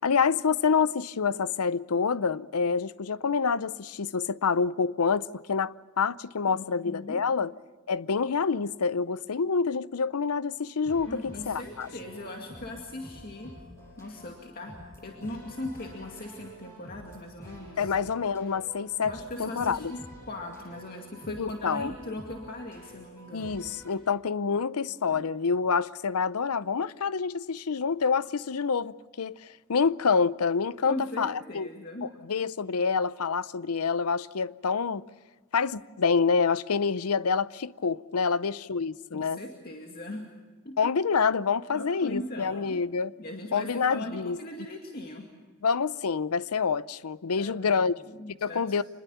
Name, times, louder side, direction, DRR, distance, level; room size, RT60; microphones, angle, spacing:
voice 1, 0.0-7.5 7.9-11.9 17.8-19.1 19.4-19.9 21.4-21.9 23.3-29.3 29.7-31.7 32.3-35.0 35.5-39.4 40.8-43.1 43.5-44.4 45.6-47.9 48.4-48.8, left 5 dB, 85° left, 0.6 m, -27 dB
voice 2, 6.5-7.3 11.1-13.6 14.0-17.9 19.1-23.6 25.1-25.3 30.8-32.2 39.1-40.3 40.6-40.9 41.7-42.8 43.2-45.3 47.4-48.8, left 1 dB, 45° left, 2.3 m, -39 dB
sound 1, 10.9-23.9, equal, 10° left, 8.0 m, -48 dB
26.5 x 21.0 x 7.1 m
head